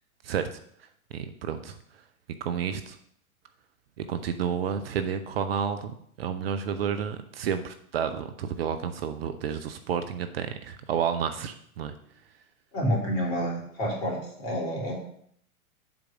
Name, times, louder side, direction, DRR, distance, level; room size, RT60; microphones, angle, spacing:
voice 1, 0.2-0.6 1.1-1.8 2.4-3.0 4.0-5.9 6.2-11.9, right 7 dB, 45° right, 9 dB, 0.6 m, -30 dB
voice 2, 12.7-14.9, equal, 45° left, -1 dB, 3.3 m, -29 dB
7.5 x 4.8 x 5.9 m, 0.66 s
figure-of-eight pair, 105°, 43 cm